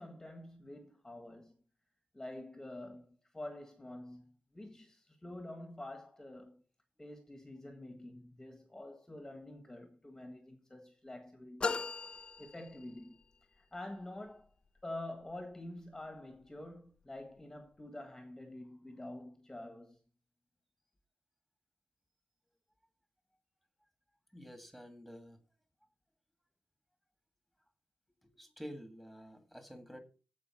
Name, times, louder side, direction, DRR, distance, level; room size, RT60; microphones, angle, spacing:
voice 1, 0.0-1.6 2.1-6.6 7.0-11.9 12.4-13.2 13.5-14.5 14.8-20.0, left 1 dB, 10° left, 1.5 m, -47 dB
sound 1, 11.6-13.3, left 4 dB, 30° left, 0.5 m, -38 dB
voice 2, 24.3-25.4 28.2-30.0, equal, 5° right, 2.0 m, -49 dB
15.0 x 5.0 x 4.8 m
wide cardioid pair, 155°, 3 cm